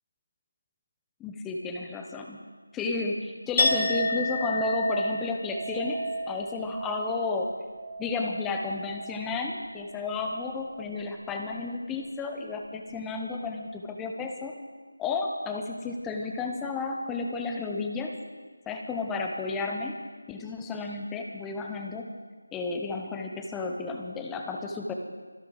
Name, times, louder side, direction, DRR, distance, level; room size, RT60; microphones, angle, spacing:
voice 1, 1.2-2.4 2.7-7.5 8.0-14.5 15.0-18.1 18.7-20.0 20.3-22.1 22.5-24.9, left 4 dB, 5° left, 2 dB, 0.8 m, -32 dB
Chink clink, 3.6-9.5 9.8-10.2, left 1 dB, 35° left, 4.8 m, -31 dB
25.5 x 11.0 x 3.9 m, 1.5 s
figure-of-eight pair, 170°, 0 cm